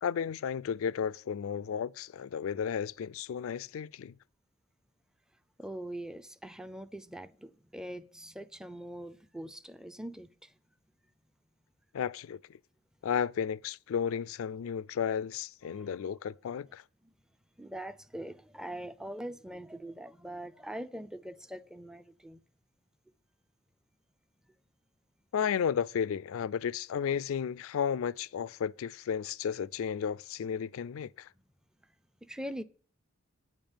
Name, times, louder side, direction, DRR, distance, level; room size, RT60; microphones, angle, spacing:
voice 1, 0.0-4.2 11.9-12.6 13.0-16.8 25.3-31.3, left 7 dB, 70° left, 0.3 m, -33 dB
voice 2, 5.6-10.5 15.7-16.0 17.6-22.4 31.4-31.5 32.2-32.6, right 1 dB, 5° right, 0.4 m, -42 dB
9.5 x 5.2 x 7.2 m
head